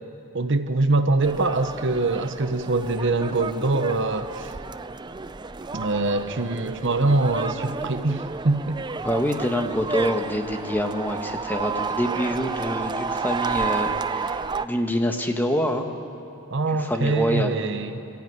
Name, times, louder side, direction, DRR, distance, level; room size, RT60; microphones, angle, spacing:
voice 1, 0.3-4.5 5.7-8.8 16.5-17.9, right 2 dB, 60° right, 9 dB, 1.0 m, -23 dB
sound 1, 1.2-14.7, right 4 dB, 20° right, 0.4 m, -31 dB
voice 2, 9.0-15.9 16.7-17.6, equal, 10° left, 4 dB, 1.3 m, -26 dB
26.5 x 14.5 x 9.4 m, 2.7 s
head